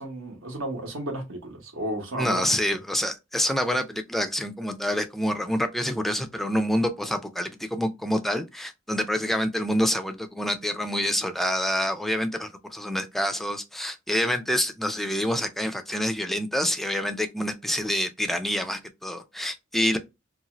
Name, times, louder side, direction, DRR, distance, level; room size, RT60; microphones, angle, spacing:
voice 1, 0.0-2.4 2.7-2.8, right 1 dB, 70° right, 0.9 m, -33 dB
voice 2, 2.2-20.0, equal, ahead, 0.3 m, -27 dB
2.6 x 2.3 x 2.9 m
head